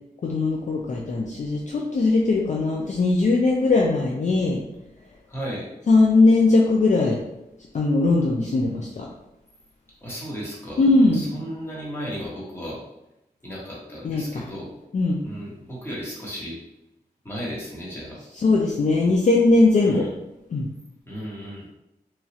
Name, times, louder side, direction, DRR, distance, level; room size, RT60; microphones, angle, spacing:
voice 1, 0.2-4.6 5.9-7.2 7.7-9.1 10.8-11.2 14.0-14.4 14.9-15.2 18.4-20.1 20.5-20.7, left 3 dB, 50° left, -2 dB, 0.4 m, -20 dB
voice 2, 5.3-5.7 10.0-12.8 13.4-14.7 15.2-16.6 17.2-18.2 19.8-20.1 21.1-21.7, equal, 15° left, -6 dB, 1.1 m, -35 dB
3.0 x 2.3 x 2.8 m, 0.88 s
wide cardioid pair, 115°, 16 cm